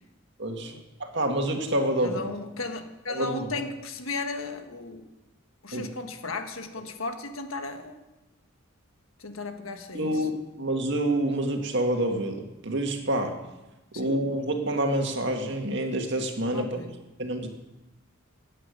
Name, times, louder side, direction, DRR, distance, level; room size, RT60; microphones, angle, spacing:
voice 1, 0.4-0.7 1.0-2.2 3.1-3.5 5.7-5.9 9.9-13.4 14.0-16.8 17.2-17.5, right 1 dB, 60° right, 3 dB, 2.0 m, -27 dB
voice 2, 2.0-5.1 5.6-8.0 9.2-10.2 13.9-14.0 16.5-17.0, left 3 dB, 85° left, 6 dB, 1.5 m, -35 dB
18.0 x 8.8 x 6.5 m, 1.0 s
head